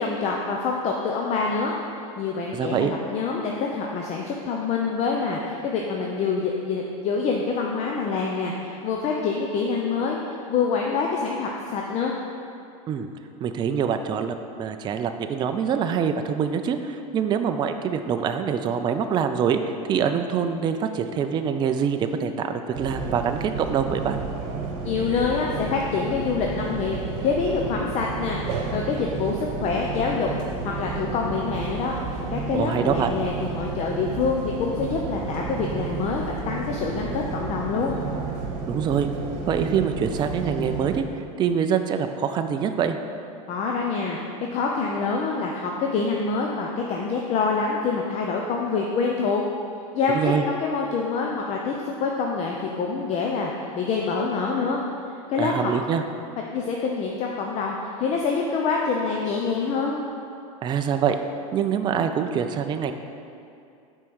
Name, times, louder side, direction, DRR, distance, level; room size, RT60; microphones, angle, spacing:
voice 1, 0.0-1.7 2.2-12.1 24.8-27.0 27.2-30.3 30.6-38.0 43.5-44.2 44.5-49.4 49.9-54.8 55.3-55.7 56.5-60.0, left 4 dB, 40° left, -1 dB, 0.7 m, -26 dB
voice 2, 2.5-2.9 12.9-13.1 13.4-24.2 32.5-33.1 38.7-39.1 39.5-43.0 50.1-50.4 55.4-56.0 60.6-61.2 61.5-62.9, right 7 dB, 25° right, 7 dB, 0.4 m, -25 dB
sound 1, 22.7-41.0, right 4 dB, 60° right, 1.2 m, -32 dB
5.9 x 4.6 x 6.3 m, 2.5 s
supercardioid pair, 120°, 18 cm